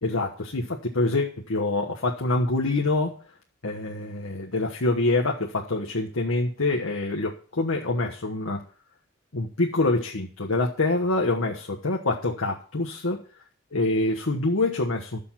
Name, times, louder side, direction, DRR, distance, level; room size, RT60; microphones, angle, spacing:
voice 1, 0.0-3.1 3.6-8.6 9.3-13.2 13.7-15.2, left 2 dB, 90° left, 0 dB, 1.2 m, -26 dB
12.5 x 6.8 x 5.8 m, 0.42 s
head